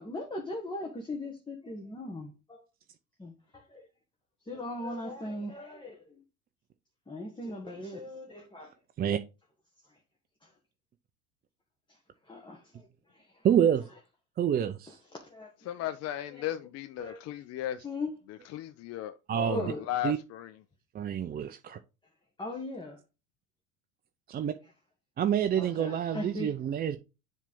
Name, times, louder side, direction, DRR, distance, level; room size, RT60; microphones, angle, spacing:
voice 1, 0.0-2.7 3.2-3.9 4.5-6.2 7.1-8.7 9.9-10.0 10.4-10.5 12.3-12.8 13.4-13.8 15.1-15.5 16.3-16.5 17.0-17.2 17.8-18.2 19.5-19.9 22.4-23.0 25.5-26.5, left 2 dB, 10° left, 1.5 m, -39 dB
voice 2, 13.4-13.8 14.4-15.0 19.3-19.6 20.0-20.2 20.9-21.8 24.3-24.5 25.2-27.0, right 9 dB, 25° right, 0.5 m, -27 dB
voice 3, 15.7-17.8 18.5-20.5, left 11 dB, 40° left, 0.6 m, -36 dB
7.3 x 3.4 x 5.3 m
hypercardioid pair, 80°, 41 cm